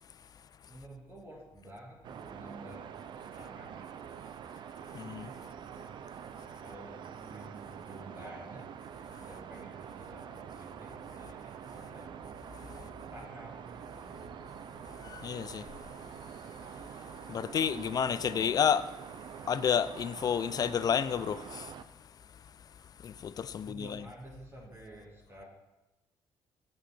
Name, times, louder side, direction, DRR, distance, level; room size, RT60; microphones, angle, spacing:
voice 1, 0.7-3.0 3.3-4.3 4.9-6.0 6.6-8.7 9.2-12.2 12.7-14.4 18.2-18.5 23.5-25.4, right 1 dB, 25° right, 1.7 m, -51 dB
sound 1, 2.0-21.8, right 8 dB, 55° right, 0.4 m, -46 dB
voice 2, 4.9-5.3 15.0-15.7 17.3-18.8 19.5-21.7 23.0-24.0, left 8 dB, 45° left, 0.4 m, -30 dB
7.2 x 6.2 x 4.3 m
supercardioid pair, 70°, 9 cm